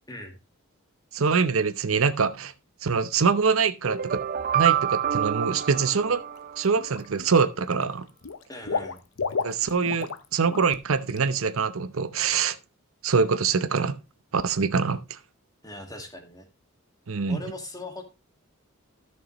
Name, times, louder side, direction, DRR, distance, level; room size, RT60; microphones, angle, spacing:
voice 1, 1.1-2.5 2.8-4.2 4.5-6.2 6.6-8.1 9.4-12.6 13.0-14.0 14.3-15.2 17.1-17.4, right 5 dB, 80° right, 0.7 m, -24 dB
sound 1, 3.8-6.9, right 10 dB, 45° right, 0.5 m, -27 dB
Water / Liquid, 6.1-6.4 6.7-7.4 7.7-10.2 10.5-10.7 11.1-11.2, left 5 dB, 85° left, 0.7 m, -32 dB
voice 2, 8.5-9.0 15.6-16.5 17.3-18.0, left 2 dB, 20° left, 1.8 m, -39 dB
14.0 x 6.5 x 3.0 m
head